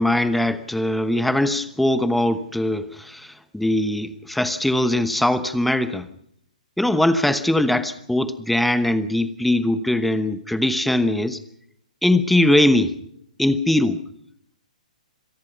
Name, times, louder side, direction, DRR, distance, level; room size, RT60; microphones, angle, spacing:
voice 1, 0.0-6.1 6.8-11.4 12.0-12.9 13.4-14.0, left 1 dB, ahead, 14 dB, 1.0 m, -21 dB
26.0 x 18.5 x 5.5 m, 0.70 s
figure-of-eight pair, 125°, 4 cm